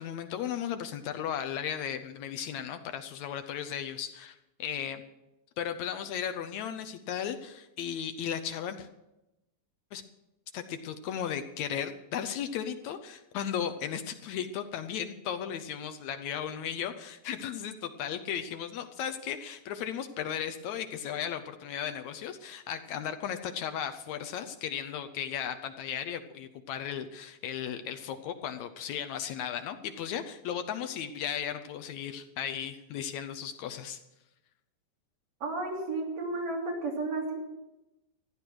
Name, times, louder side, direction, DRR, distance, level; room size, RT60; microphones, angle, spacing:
voice 1, 0.0-5.0 5.6-8.9 9.9-10.0 10.5-34.0, left 9 dB, 75° left, 8 dB, 1.9 m, -36 dB
voice 2, 35.4-37.4, right 2 dB, 55° right, -2 dB, 4.3 m, -33 dB
15.0 x 11.0 x 6.1 m, 0.95 s
omnidirectional pair, 3.5 m